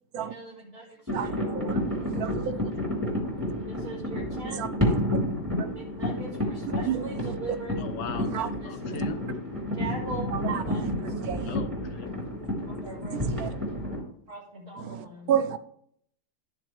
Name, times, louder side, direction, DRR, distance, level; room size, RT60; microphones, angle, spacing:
voice 1, 0.2-1.6 3.7-4.8 5.7-7.8 8.3-9.0 9.7-11.3 12.8-13.5 14.3-15.3, right 2 dB, 35° right, -6 dB, 2.2 m, -41 dB
sound 1, 1.1-14.0, left 1 dB, 10° right, 3.5 m, -30 dB
voice 2, 1.1-2.7 4.4-5.0 6.9-7.3 8.2-8.5 8.9-9.0 10.3-11.5 13.1-13.5 14.8-15.6, right 8 dB, 65° right, 13 dB, 1.1 m, -32 dB
voice 3, 7.8-8.3 8.6-9.2 11.5-12.1, left 6 dB, 75° left, 8 dB, 1.6 m, -37 dB
13.0 x 7.0 x 3.3 m, 0.67 s
omnidirectional pair, 1.9 m